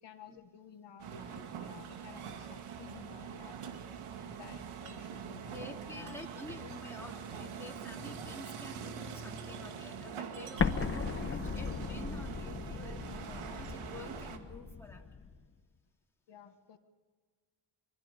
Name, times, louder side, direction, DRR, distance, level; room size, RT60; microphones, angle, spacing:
voice 1, 0.0-3.6 3.9-4.0 4.2-5.5 5.8-6.2 16.3-16.8, left 8 dB, 55° left, 7 dB, 1.5 m, -53 dB
sound 1, 1.0-14.4, right 7 dB, 80° right, 2.2 m, -44 dB
voice 2, 5.5-15.0, left 1 dB, 5° left, -1 dB, 3.1 m, -49 dB
Explosion, 10.6-15.4, left 5 dB, 25° left, 1.1 m, -37 dB
25.0 x 22.5 x 5.1 m, 1.5 s
cardioid pair, 130°, 49 cm